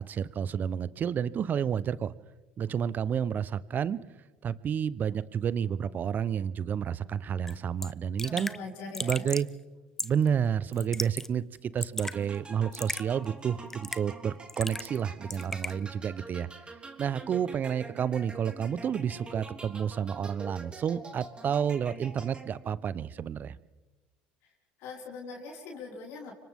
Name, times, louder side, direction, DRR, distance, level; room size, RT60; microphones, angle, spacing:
voice 1, 0.0-2.1 2.6-4.0 4.4-8.5 9.0-9.5 10.0-16.5 17.0-23.6, right 8 dB, 40° right, 18 dB, 0.9 m, -30 dB
Raindrop / Drip, 7.5-7.6 7.8-7.9 8.2-8.6 8.9-9.5 10.0-10.3 10.7-11.3 11.6-12.2 12.7-13.0 13.7-14.1 14.5-15.0 15.3-15.7, left 2 dB, 10° left, 0.8 m, -35 dB
voice 2, 8.2-9.3 24.8-26.3, left 3 dB, 65° left, -2 dB, 5.3 m, -42 dB
sound 1, 12.1-22.8, right 3 dB, 20° right, 3.4 m, -46 dB
30.0 x 25.5 x 3.7 m, 1.2 s
hypercardioid pair, 75°, 5 cm